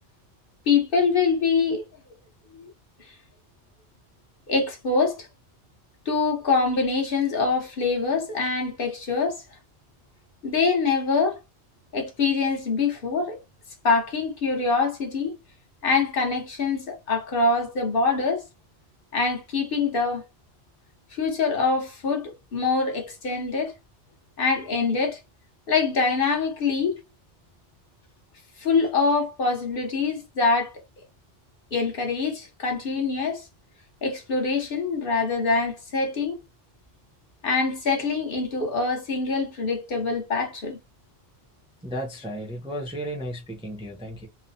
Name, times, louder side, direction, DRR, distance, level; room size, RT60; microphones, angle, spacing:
voice 1, 0.7-1.8 2.5-2.7 4.5-5.3 6.1-9.4 10.4-11.4 11.9-13.4 13.8-15.4 15.8-18.4 19.1-20.2 21.1-23.7 24.4-25.2 25.7-27.0 28.6-30.7 31.7-33.5 34.0-36.4 37.4-40.8, left 4 dB, 55° left, 1.0 m, -24 dB
voice 2, 41.8-44.3, equal, 5° right, 0.5 m, -34 dB
3.0 x 2.0 x 2.6 m
omnidirectional pair, 1.1 m